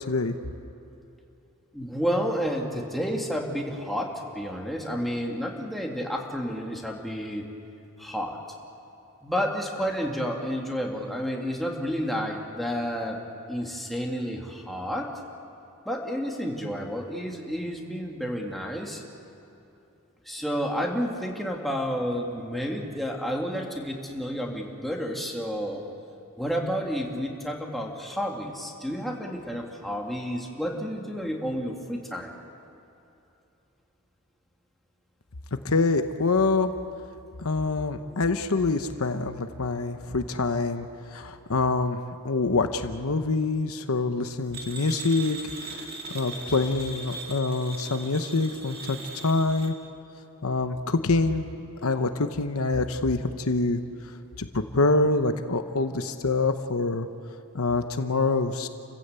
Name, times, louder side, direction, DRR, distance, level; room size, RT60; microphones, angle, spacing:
voice 1, 1.7-7.5 8.0-8.4 9.2-13.2 13.5-15.1 15.9-19.0 20.3-25.8 26.4-32.3 38.0-38.3, equal, ahead, -1 dB, 2.3 m, -30 dB
voice 2, 35.6-36.7 37.4-42.0 42.2-45.4 45.7-45.9 46.1-49.0 49.2-49.7 50.4-51.5 51.8-53.8 54.4-57.1 57.5-58.7, left 3 dB, 70° left, 8 dB, 1.0 m, -25 dB
sound 1, 44.5-49.7, right 2 dB, 45° right, 2.2 m, -39 dB
29.5 x 15.5 x 8.2 m, 2.7 s
head